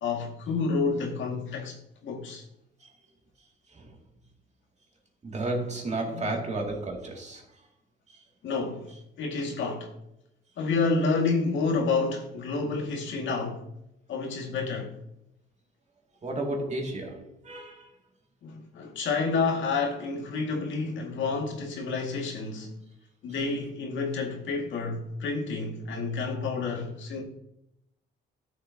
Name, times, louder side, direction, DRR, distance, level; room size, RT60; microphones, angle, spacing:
voice 1, 0.0-1.8 2.0-2.4 6.1-6.4 8.4-8.9 9.2-9.9 10.6-13.7 14.1-14.9 18.4-22.7 23.2-27.2, left 4 dB, 75° left, 1.9 m, -29 dB
voice 2, 5.2-7.6 8.1-8.2 16.2-17.9 23.3-23.4, right 2 dB, 35° right, 2.3 m, -33 dB
12.5 x 7.3 x 2.8 m
cardioid pair, 90°, 20 cm